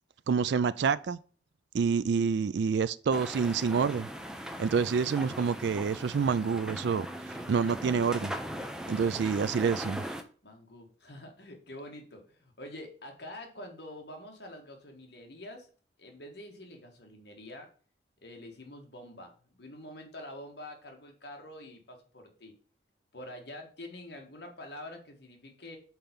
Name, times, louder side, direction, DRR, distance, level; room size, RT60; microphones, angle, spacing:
voice 1, 0.3-1.2 1.7-4.1 4.6-8.3 8.9-10.0, right 6 dB, 70° right, 0.3 m, -28 dB
sound 1, 3.1-10.2, equal, 5° right, 0.5 m, -39 dB
voice 2, 10.4-15.7 16.0-17.7 18.2-22.5 23.1-25.8, left 1 dB, 65° left, 1.7 m, -46 dB
5.6 x 4.4 x 5.2 m
head